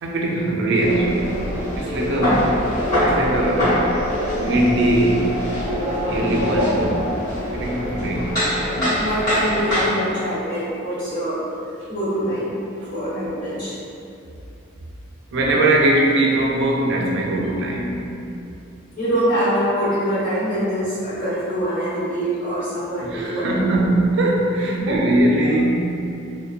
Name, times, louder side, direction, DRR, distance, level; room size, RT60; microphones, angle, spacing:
voice 1, 0.0-1.4 1.8-2.4 3.0-3.9 4.2-5.4 6.0-6.9 7.5-8.4 12.8-12.9 15.3-18.2 23.0-26.0, right 1 dB, 55° right, -1 dB, 0.3 m, -21 dB
sound 1, 0.8-9.9, equal, 20° left, 1.3 m, -23 dB
voice 2, 8.7-11.4 11.9-12.6 12.9-13.7 19.0-23.8 24.8-25.1, equal, 40° left, -12 dB, 1.1 m, -24 dB
2.6 x 2.1 x 2.3 m, 2.7 s
head